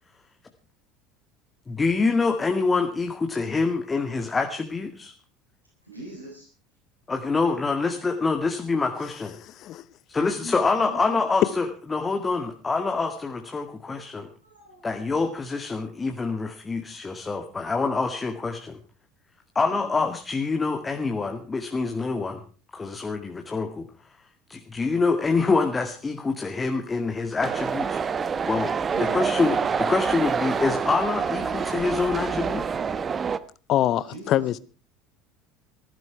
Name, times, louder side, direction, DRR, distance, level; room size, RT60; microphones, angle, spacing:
voice 1, 1.7-5.1 7.1-9.3 10.1-14.3 14.8-18.6 19.6-22.4 22.7-23.9 24.5-28.0 28.3-28.7 29.0-32.6, left 4 dB, 20° left, 2.1 m, -26 dB
voice 2, 5.8-6.5 10.1-11.2 13.8-14.9 19.6-19.9 28.8-29.3 34.1-34.5, right 1 dB, 90° right, 8.0 m, -43 dB
sound 1, 27.4-33.4, right 6 dB, 25° right, 1.1 m, -27 dB
voice 3, 33.7-34.6, left 12 dB, 45° left, 0.8 m, -24 dB
18.5 x 15.0 x 4.7 m
figure-of-eight pair, 65°, 0 cm